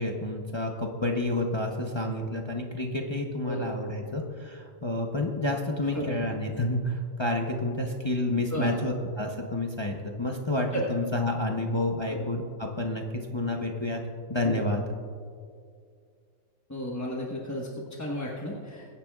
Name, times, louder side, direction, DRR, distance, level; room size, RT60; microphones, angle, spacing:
voice 1, 0.0-14.0 14.3-14.8, left 1 dB, 35° left, 1 dB, 0.4 m, -29 dB
voice 2, 5.9-6.3 8.5-8.8 10.7-10.8 12.1-12.3 14.4-14.6 16.7-18.9, equal, 10° left, -3 dB, 0.9 m, -34 dB
22.0 x 10.0 x 2.4 m, 2.2 s
omnidirectional pair, 1.8 m